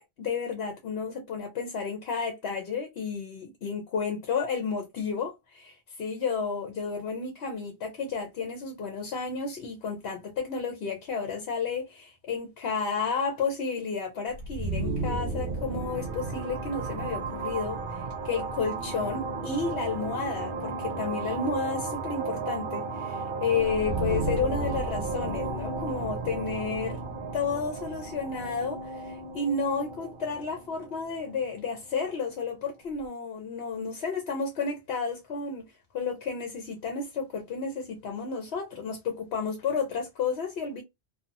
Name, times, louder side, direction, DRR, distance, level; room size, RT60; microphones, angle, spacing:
voice 1, 0.0-27.0 27.3-35.7 35.9-40.8, left 5 dB, 70° left, 1.0 m, -32 dB
sound 1, 14.3-32.0, right 3 dB, 60° right, 0.7 m, -33 dB
2.8 x 2.3 x 2.5 m
omnidirectional pair, 1.1 m